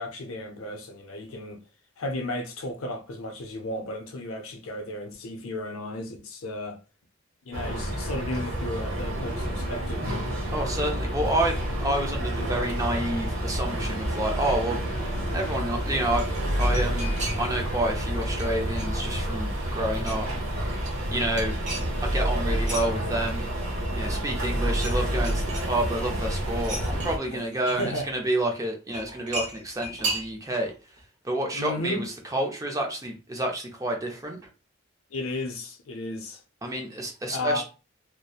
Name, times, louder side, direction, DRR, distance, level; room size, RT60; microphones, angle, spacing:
voice 1, 0.0-1.6 2.0-6.8 7.5-10.1 27.2-27.4 27.7-28.1 31.5-32.1 35.1-36.4 37.3-37.6, left 1 dB, 75° left, 0.5 m, -34 dB
sound 1, 7.5-27.2, equal, 60° right, 0.8 m, -29 dB
voice 2, 10.5-14.8 15.3-16.2 16.6-20.3 21.1-21.5 22.0-23.5 23.9-30.7 31.2-34.4 36.6-37.6, right 1 dB, 15° right, 0.4 m, -29 dB
Glasses Kitchen IO, 16.1-17.7 18.0-19.4 19.7-20.4 20.7-22.9 23.2-24.1 24.4-25.0 25.2-26.1 26.6-28.1 28.9-30.7 31.0-31.1, right 2 dB, 35° right, 0.8 m, -36 dB
2.8 x 2.0 x 2.3 m
head